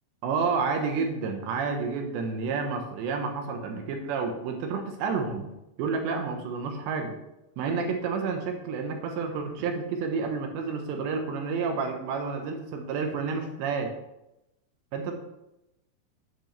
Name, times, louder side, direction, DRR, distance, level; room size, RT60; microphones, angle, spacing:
voice 1, 0.2-5.5 5.8-7.2 7.6-13.9 14.9-15.1, right 5 dB, 75° right, 4 dB, 3.3 m, -30 dB
9.5 x 9.3 x 3.4 m, 0.90 s
omnidirectional pair, 5.3 m